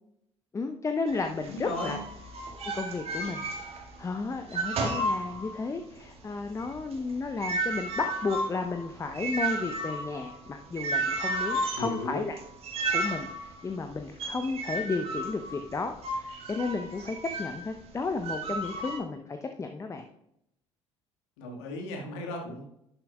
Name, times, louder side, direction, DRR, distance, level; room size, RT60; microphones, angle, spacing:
voice 1, 0.5-2.0 2.7-3.5 3.7-12.3 12.9-20.1, left 3 dB, 20° left, 6 dB, 0.7 m, -33 dB
sound 1, 1.1-4.1 4.3-5.8 6.2-17.7 18.2-19.0, right 2 dB, 40° right, 2.0 m, -33 dB
voice 2, 1.5-2.0 11.7-12.2 21.4-22.6, left 2 dB, 65° left, 1 dB, 1.8 m, -35 dB
11.5 x 10.5 x 2.4 m, 0.79 s
figure-of-eight pair, 55°, 15 cm